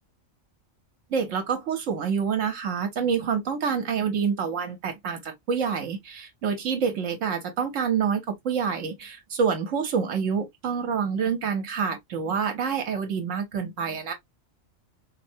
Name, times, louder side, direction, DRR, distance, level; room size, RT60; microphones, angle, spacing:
voice 1, 1.1-14.1, right 6 dB, 70° right, 1.1 m, -27 dB
4.5 x 2.1 x 2.6 m
omnidirectional pair, 1.4 m